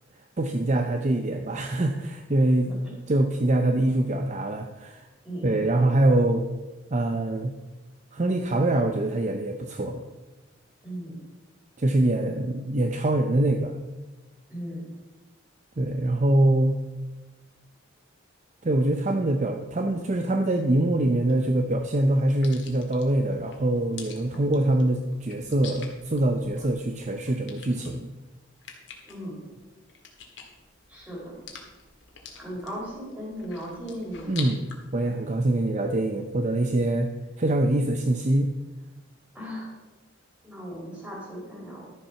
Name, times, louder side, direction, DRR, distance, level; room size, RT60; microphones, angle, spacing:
voice 1, 0.4-2.7 3.1-5.1 5.4-6.5 6.9-7.5 8.1-10.0 11.8-13.8 15.8-16.8 18.6-28.1 34.3-34.6 34.9-37.1 37.4-38.5, right 1 dB, 35° right, 5 dB, 0.6 m, -24 dB
voice 2, 2.6-2.9 5.2-5.7 10.8-11.2 14.5-14.8 29.0-29.4 30.9-31.3 32.4-34.4 39.3-39.7 40.4-41.9, equal, 5° right, -5 dB, 4.2 m, -37 dB
sound 1, 20.8-34.8, left 5 dB, 60° left, 1.9 m, -47 dB
12.0 x 7.3 x 5.8 m, 1.2 s
head